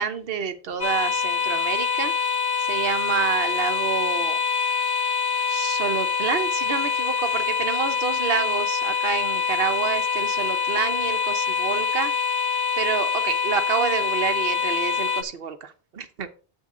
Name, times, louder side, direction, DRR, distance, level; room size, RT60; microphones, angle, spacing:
voice 1, 0.0-2.1 2.7-4.4 5.5-12.1 12.8-16.3, right 7 dB, 55° right, 8 dB, 1.1 m, -28 dB
sound 1, 0.8-15.2, left 5 dB, 25° left, 0.6 m, -25 dB
8.4 x 7.5 x 3.8 m, 0.36 s
omnidirectional pair, 1.1 m